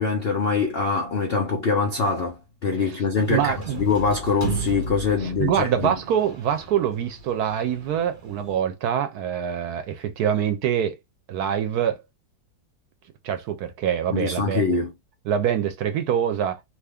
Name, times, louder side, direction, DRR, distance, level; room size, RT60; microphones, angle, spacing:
voice 1, 0.0-6.0 14.1-14.9, left 4 dB, 80° left, 0.5 m, -24 dB
sound 1, 3.1-8.6, right 2 dB, 30° right, 1.1 m, -35 dB
voice 2, 3.3-3.8 5.2-11.0 11.3-12.0 13.2-14.8 15.3-16.6, right 9 dB, 70° right, 1.0 m, -25 dB
2.8 x 2.5 x 3.4 m
omnidirectional pair, 2.0 m